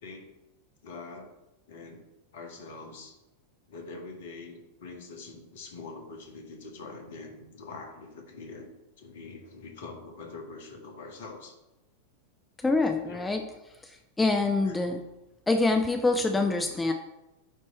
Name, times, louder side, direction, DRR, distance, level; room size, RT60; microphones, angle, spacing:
voice 1, 0.0-0.3 0.8-1.3 1.7-2.0 2.3-3.2 3.7-8.7 9.0-11.6 13.0-13.2 14.6-14.8, left 3 dB, 55° left, 4 dB, 1.2 m, -44 dB
voice 2, 12.6-13.4 13.8-15.0 15.5-16.9, left 3 dB, 10° left, 4 dB, 0.5 m, -25 dB
8.6 x 3.1 x 4.3 m, 0.96 s
figure-of-eight pair, 90°, 0 cm